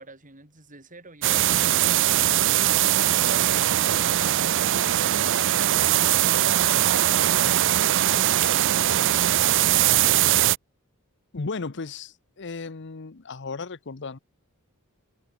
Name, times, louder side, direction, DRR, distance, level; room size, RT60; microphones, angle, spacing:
voice 1, 0.0-5.3, right 2 dB, 40° right, 5.4 m, -46 dB
sound 1, 1.2-10.6, right 12 dB, 60° right, 0.5 m, -21 dB
voice 2, 11.3-14.2, left 4 dB, 55° left, 0.9 m, -35 dB
head